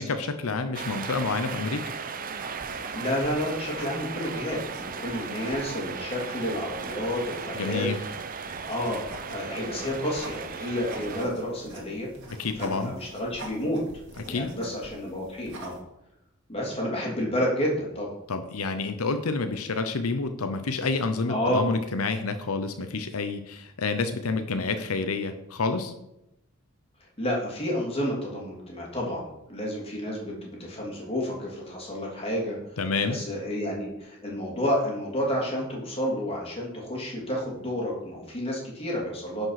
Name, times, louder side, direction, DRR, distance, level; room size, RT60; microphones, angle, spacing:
voice 1, 0.0-1.9 7.5-8.0 12.3-12.9 14.3-14.5 18.3-25.9 32.8-33.2, left 4 dB, 90° left, 8 dB, 0.8 m, -29 dB
sound 1, 0.7-11.3, right 6 dB, 40° right, 0.7 m, -36 dB
sound 2, 2.3-15.8, right 1 dB, 60° right, 2.2 m, -46 dB
voice 2, 2.9-7.9 8.7-12.1 12.6-13.8 14.2-15.8 16.5-18.1 21.3-21.7 27.2-32.6 33.0-39.5, left 1 dB, 30° left, -2 dB, 3.0 m, -30 dB
11.0 x 5.4 x 5.9 m, 0.87 s
head